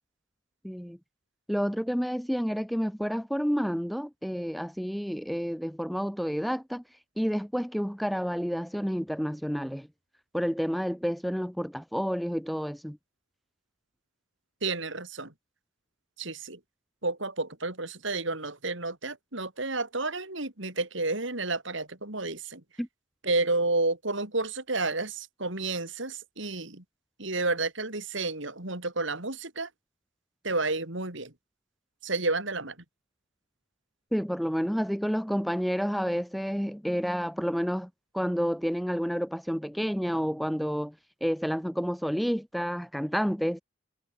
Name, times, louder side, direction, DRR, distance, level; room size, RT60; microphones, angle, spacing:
voice 1, 0.6-1.0 1.5-6.8 7.2-9.9 10.3-13.0 22.8-22.9 34.1-37.9 38.1-40.9 41.2-43.6, equal, ahead, 1.8 m, -29 dB
voice 2, 14.6-15.3 16.2-16.6 17.0-22.6 23.2-26.8 27.2-29.7 30.4-31.3 32.0-32.8, right 3 dB, 65° right, 3.8 m, -31 dB
head